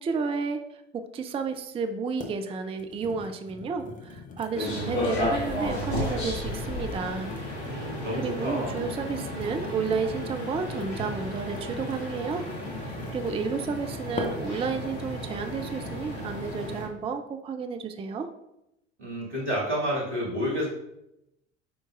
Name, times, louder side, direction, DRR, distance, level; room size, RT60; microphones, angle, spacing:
voice 1, 0.0-0.8 1.1-7.3 8.2-12.4 12.7-18.3, right 5 dB, 15° right, 8 dB, 0.5 m, -32 dB
sound 1, 1.4-1.5 2.2-2.4 2.7-7.9 8.5-13.5 14.2-14.6 15.1-15.4, left 3 dB, 20° left, 1.1 m, -42 dB
sound 2, 4.5-16.8, left 1 dB, 65° left, 2.3 m, -33 dB
voice 2, 7.6-8.8 19.0-20.7, equal, 80° right, -5 dB, 2.2 m, -30 dB
7.3 x 5.2 x 2.5 m, 0.84 s
figure-of-eight pair, 65°, 35 cm